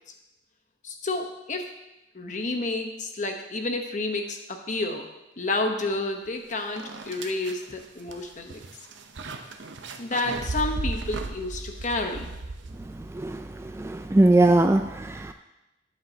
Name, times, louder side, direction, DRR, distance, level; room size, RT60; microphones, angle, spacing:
voice 1, 0.8-1.7 2.1-5.1 5.4-8.6 10.0-12.3, left 2 dB, 40° left, 4 dB, 1.0 m, -30 dB
sound 1, 6.3-6.4 6.8-13.1, right 2 dB, 80° right, 0.7 m, -35 dB
voice 2, 13.8-15.3, right 2 dB, 15° right, 7 dB, 0.3 m, -20 dB
11.5 x 8.5 x 2.8 m, 0.94 s
head